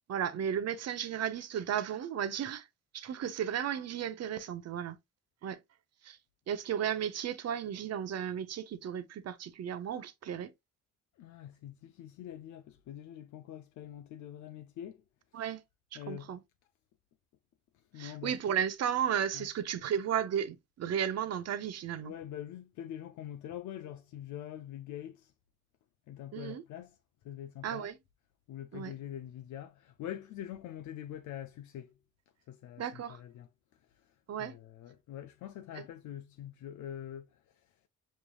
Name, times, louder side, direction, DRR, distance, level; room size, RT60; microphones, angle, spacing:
voice 1, 0.1-2.7 2.9-5.0 5.4-5.6 6.0-6.2 6.5-10.5 15.3-15.6 15.9-16.4 18.0-22.1 26.3-26.6 27.6-28.0 28.7-28.9 32.8-33.2 34.3-34.6 35.7-35.8, right 9 dB, 55° right, 0.7 m, -34 dB
voice 2, 11.2-15.0 15.9-16.4 17.9-18.6 19.3-19.5 22.0-25.3 26.1-27.0 27.2-27.9 28.5-31.9 32.5-33.5 34.4-37.4, left 11 dB, 75° left, 0.5 m, -44 dB
5.2 x 3.2 x 2.3 m
cardioid pair, 90°, 30 cm